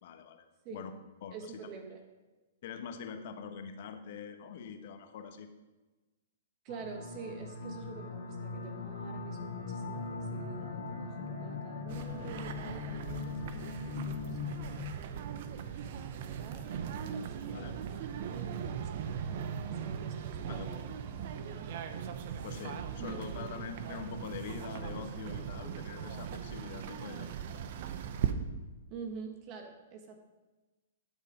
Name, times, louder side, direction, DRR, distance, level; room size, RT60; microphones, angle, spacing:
voice 1, 0.0-0.5 0.7-0.9 1.2-1.7 2.6-5.5 17.5-17.7 20.5-20.8 22.4-27.7, left 6 dB, 60° left, 7 dB, 1.2 m, -44 dB
voice 2, 1.3-2.0 6.6-20.9 21.2-21.8 23.0-23.6 28.9-30.2, right 5 dB, 40° right, 4 dB, 1.3 m, -48 dB
sound 1, 6.7-14.8, left 4 dB, 85° left, 1.7 m, -40 dB
sound 2, 11.9-28.3, right 8 dB, 55° right, 0.9 m, -39 dB
12.0 x 6.6 x 5.0 m, 1.2 s
hypercardioid pair, 130°, 0 cm